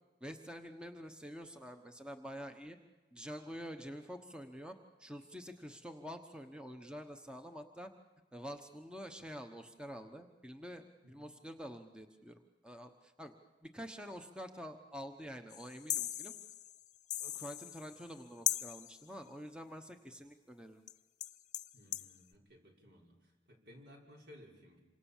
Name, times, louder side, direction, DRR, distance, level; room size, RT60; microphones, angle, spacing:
voice 1, 0.2-2.8 3.1-7.9 8.3-13.3 13.6-16.3 17.2-20.8, equal, 5° right, 5 dB, 1.1 m, -47 dB
sound 1, 15.5-18.2 18.5-19.0 20.9-21.0 21.2-22.1, left 12 dB, 40° left, 0.8 m, -39 dB
voice 2, 21.7-23.1 23.5-24.8, left 1 dB, 65° right, 0 dB, 5.8 m, -58 dB
27.5 x 25.5 x 7.4 m, 1.2 s
head